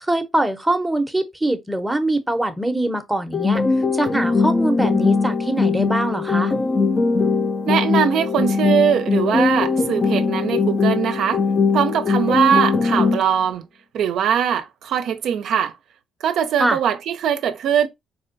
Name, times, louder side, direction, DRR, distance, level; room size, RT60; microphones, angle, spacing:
voice 1, 0.0-3.6 3.9-6.5 16.6-16.8, right 1 dB, 5° right, 0.6 m, -23 dB
sound 1, 3.3-13.3, left 4 dB, 35° left, 0.4 m, -20 dB
voice 2, 7.7-11.4 11.7-13.6 13.9-15.7 16.2-17.9, right 8 dB, 75° right, 0.4 m, -21 dB
4.2 x 2.2 x 2.5 m
cardioid pair, 90°, 0 cm